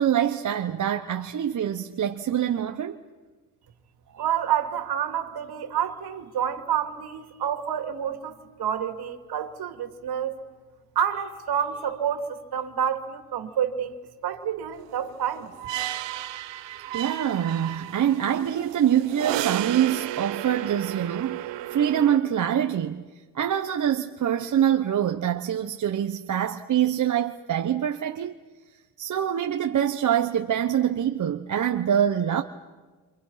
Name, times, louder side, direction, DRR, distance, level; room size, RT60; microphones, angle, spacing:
voice 1, 0.0-3.0 4.1-4.2 16.9-23.0 23.3-28.3 29.0-32.4, right 10 dB, 40° right, 1.1 m, -25 dB
voice 2, 4.2-10.4 10.9-14.0 14.2-15.5, right 9 dB, 60° right, 2.8 m, -28 dB
sound 1, 14.9-22.2, right 13 dB, 75° right, 1.2 m, -33 dB
30.0 x 27.5 x 5.8 m
cardioid pair, 110°, 44 cm